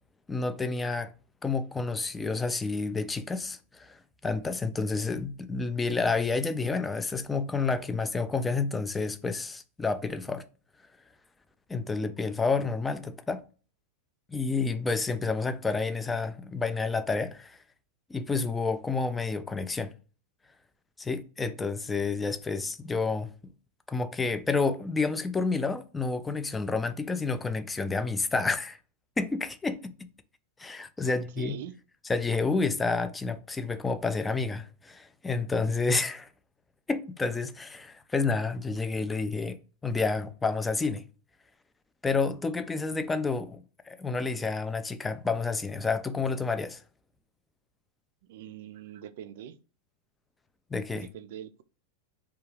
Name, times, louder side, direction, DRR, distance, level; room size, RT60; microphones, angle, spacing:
voice 1, 0.3-1.1 1.4-10.4 11.7-13.4 14.3-17.6 18.1-19.9 21.0-23.3 23.9-28.8 29.2-29.9 30.6-31.5 32.1-36.3 36.9-39.6 39.8-41.0 42.0-46.8 50.7-51.1, left 4 dB, 15° left, 0.3 m, -29 dB
voice 2, 31.0-31.7 48.3-49.6 50.9-51.6, right 10 dB, 65° right, 0.3 m, -43 dB
2.3 x 2.2 x 3.2 m
hypercardioid pair, 115°, 0 cm